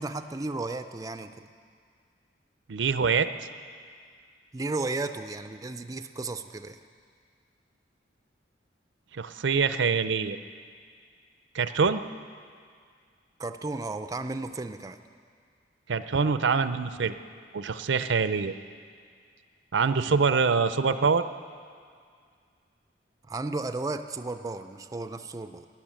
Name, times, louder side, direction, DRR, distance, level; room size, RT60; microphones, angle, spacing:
voice 1, 0.0-1.3 4.5-6.8 13.4-15.0 23.3-25.7, right 2 dB, 20° right, 8 dB, 0.4 m, -34 dB
voice 2, 2.7-3.3 9.1-10.4 11.5-12.0 15.9-17.2 17.5-18.5 19.7-21.2, right 5 dB, 80° right, 12 dB, 0.6 m, -24 dB
13.5 x 10.0 x 9.0 m, 2.1 s
head